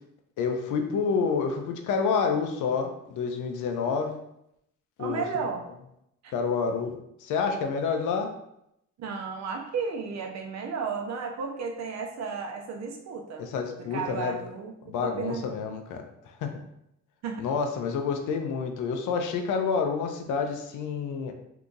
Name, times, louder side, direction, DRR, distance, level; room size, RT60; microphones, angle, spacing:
voice 1, 0.4-4.2 5.0-5.2 6.3-6.9 7.2-8.3 13.4-14.4 14.9-16.5 17.4-21.3, left 5 dB, 85° left, 4 dB, 0.6 m, -28 dB
voice 2, 5.0-5.6 6.2-6.3 9.0-13.5 13.8-15.5 17.2-17.4, right 5 dB, 65° right, 2 dB, 0.7 m, -33 dB
2.8 x 2.4 x 3.8 m, 0.79 s
cardioid pair, 90°, 30 cm